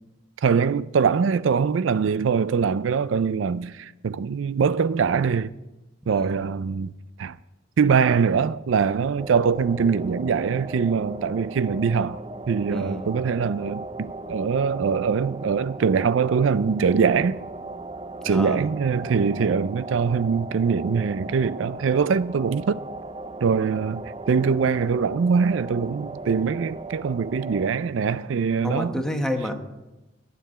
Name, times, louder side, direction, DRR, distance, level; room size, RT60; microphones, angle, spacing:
voice 1, 0.4-5.5 6.1-6.9 7.2-7.4 7.8-12.2 12.5-17.4 18.2-22.8 23.4-24.0 24.3-29.0, right 6 dB, 80° right, 0.4 m, -23 dB
sound 1, 9.2-27.7, right 2 dB, 30° right, 0.7 m, -37 dB
voice 2, 12.7-13.1 18.2-18.7 28.6-29.5, left 1 dB, 5° left, 1.2 m, -29 dB
12.0 x 6.9 x 9.7 m
head